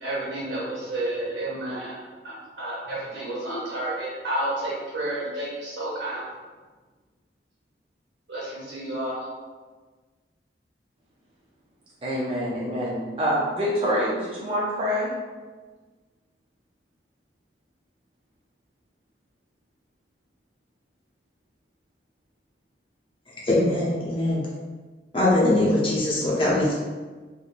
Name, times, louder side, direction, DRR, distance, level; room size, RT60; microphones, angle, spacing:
voice 1, 0.0-1.9 2.6-6.2 8.3-9.2, right 1 dB, 85° right, -7 dB, 1.4 m, -30 dB
voice 2, 12.0-15.1, equal, 30° right, -7 dB, 0.5 m, -26 dB
voice 3, 23.4-24.4 25.1-26.7, left 1 dB, 30° left, -6 dB, 0.7 m, -21 dB
3.2 x 2.5 x 2.4 m, 1.4 s
head